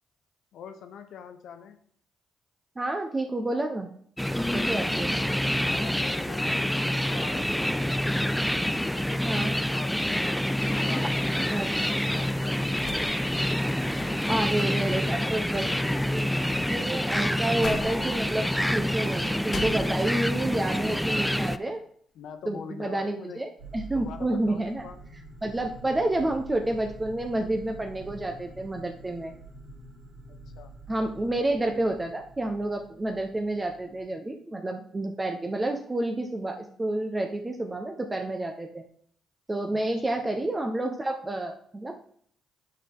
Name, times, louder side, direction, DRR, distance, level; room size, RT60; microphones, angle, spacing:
voice 1, 0.5-1.8 5.7-8.1 8.6-13.4 14.0-16.1 16.5-16.7 22.1-23.4 23.9-25.0 30.3-30.7 39.7-39.8 40.1-40.2, left 7 dB, 70° left, 6 dB, 1.0 m, -44 dB
voice 2, 2.8-3.9 4.5-5.1 9.2-9.5 11.5-11.7 14.3-15.7 16.1-21.8 22.5-24.8 25.4-29.3 30.9-38.8 39.5-42.0, right 1 dB, 25° right, 3 dB, 1.1 m, -29 dB
sound 1, 4.2-21.6, equal, 5° left, 0.5 m, -27 dB
sound 2, 12.8-20.5 20.9-21.7, left 3 dB, 45° left, 1.3 m, -43 dB
sound 3, 23.6-34.0, right 2 dB, 75° right, 3.8 m, -46 dB
8.9 x 6.4 x 3.7 m, 0.62 s
supercardioid pair, 55°, 0 cm